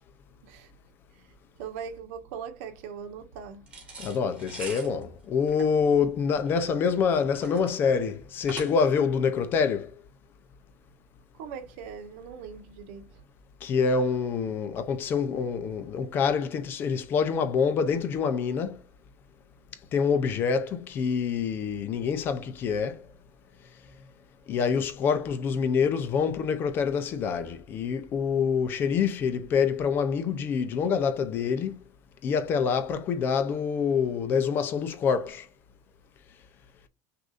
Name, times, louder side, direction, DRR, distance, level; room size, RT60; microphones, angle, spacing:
voice 1, 1.6-3.7 11.3-13.2, right 7 dB, 75° right, 1.2 m, -40 dB
sound 1, 3.7-9.1, right 4 dB, 15° right, 1.8 m, -43 dB
voice 2, 4.0-9.9 13.6-18.8 19.9-23.0 24.5-31.8 32.2-35.5, left 6 dB, 30° left, 0.5 m, -26 dB
6.3 x 2.6 x 2.5 m
cardioid pair, 180°, 7 cm